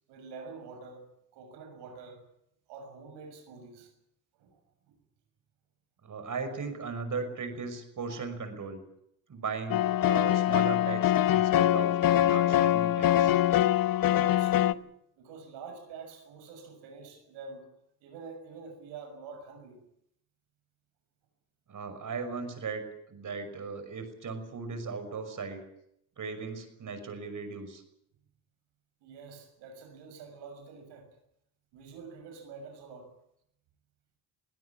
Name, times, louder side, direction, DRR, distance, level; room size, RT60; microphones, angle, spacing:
voice 1, 0.1-1.1 1.3-2.2 2.7-3.9 4.4-4.6 14.0-14.8 15.2-17.6 18.0-19.8 29.0-31.1 31.7-33.1, right 4 dB, 80° right, 6 dB, 6.5 m, -46 dB
voice 2, 6.0-8.8 9.3-13.3 21.7-25.6 26.2-27.8, right 4 dB, 50° right, 10 dB, 6.0 m, -37 dB
sound 1, 9.7-14.7, left 13 dB, 55° left, 0.9 m, -24 dB
22.5 x 17.0 x 8.5 m, 0.75 s
supercardioid pair, 70°, 41 cm